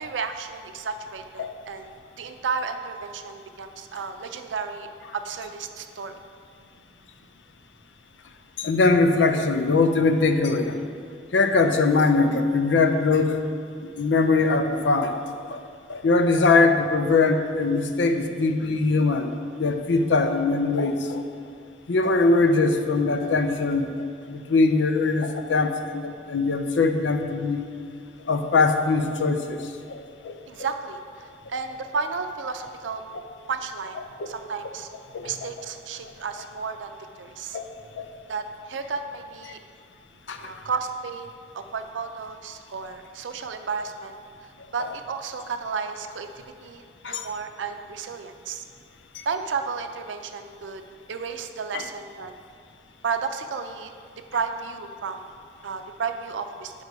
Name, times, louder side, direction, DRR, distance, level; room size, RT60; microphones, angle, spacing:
voice 1, 0.0-4.9 5.1-6.2 30.5-33.0 33.5-34.9 35.2-37.6 38.3-39.6 40.4-44.1 44.7-48.6 49.2-50.8 51.1-52.4 53.0-53.9 54.3-55.3 55.6-56.7, right 5 dB, 85° right, 7 dB, 0.5 m, -32 dB
voice 2, 8.6-10.8 11.3-13.4 13.8-15.2 15.5-15.6 15.9-21.2 21.9-27.7 28.3-30.4 34.2-34.3 35.1-35.5 37.5-37.7 38.0-38.1 40.3-40.4 47.0-47.3 49.1-49.2 51.7-51.9, left 3 dB, 75° left, 7 dB, 0.5 m, -22 dB
6.7 x 5.3 x 4.7 m, 2.2 s
head